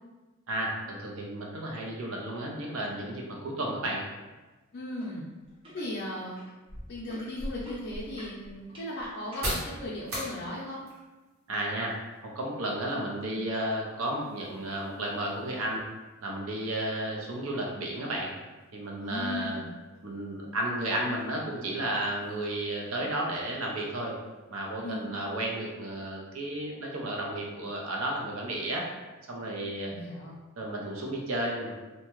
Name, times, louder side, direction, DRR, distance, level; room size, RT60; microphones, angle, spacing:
voice 1, 0.5-4.0 11.5-11.9 12.2-15.8 16.2-18.3 18.7-19.6 20.0-24.2 24.5-28.9 29.3-29.9 30.6-31.7, right 1 dB, 70° right, -1 dB, 0.6 m, -33 dB
voice 2, 4.7-5.3 5.7-6.4 6.9-10.8 19.0-19.7 24.8-25.2 29.9-30.3, left 1 dB, 50° left, -6 dB, 0.5 m, -37 dB
sound 1, 5.0-5.1 5.4-5.8 6.4-9.4 10.1-10.2, equal, 25° right, 0.9 m, -42 dB
sound 2, 7.3-24.9, equal, 85° right, 1.0 m, -45 dB
2.7 x 2.2 x 3.0 m, 1.2 s
head